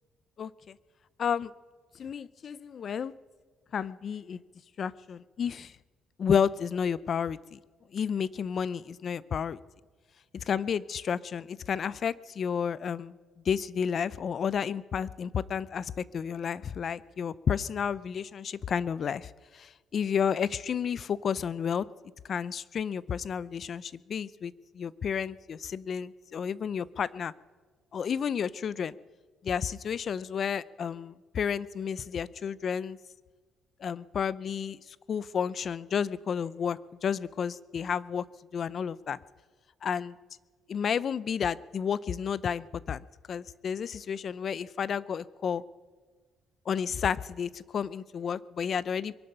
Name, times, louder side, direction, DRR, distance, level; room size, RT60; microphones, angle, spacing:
voice 1, 0.4-0.8 1.2-1.5 2.0-3.1 3.7-4.4 4.8-5.7 6.2-7.6 7.9-9.6 10.5-13.1 13.5-21.9 22.3-27.3 27.9-29.0 29.4-33.0 33.8-34.8 35.1-38.2 38.5-39.2 39.8-40.2 40.7-43.0 43.3-45.6 46.7-49.2, left 7 dB, 50° left, 19 dB, 0.5 m, -31 dB
23.0 x 11.0 x 5.6 m, 1.4 s
cardioid pair, 115°, 0 cm